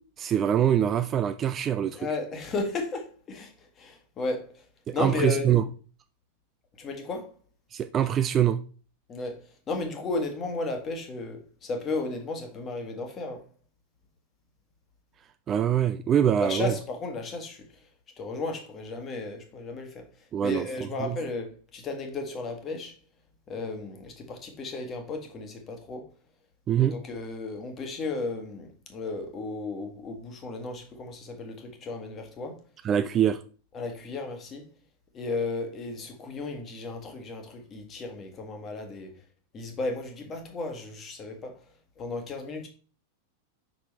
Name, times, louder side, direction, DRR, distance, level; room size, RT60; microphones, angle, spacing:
voice 1, 0.2-2.0 4.9-5.6 7.7-8.6 15.5-16.7 20.3-20.7 21.0-21.2 26.7-26.9 32.8-33.4, right 10 dB, 25° right, 0.3 m, -24 dB
voice 2, 1.9-4.6 4.9-5.6 6.8-7.3 9.1-13.5 16.4-17.8 18.2-22.9 23.5-26.1 26.8-32.6 33.7-34.7 35.1-39.2 39.5-41.6 42.0-42.7, left 3 dB, 25° left, 1.4 m, -34 dB
5.8 x 5.2 x 3.3 m
figure-of-eight pair, 90°, 0 cm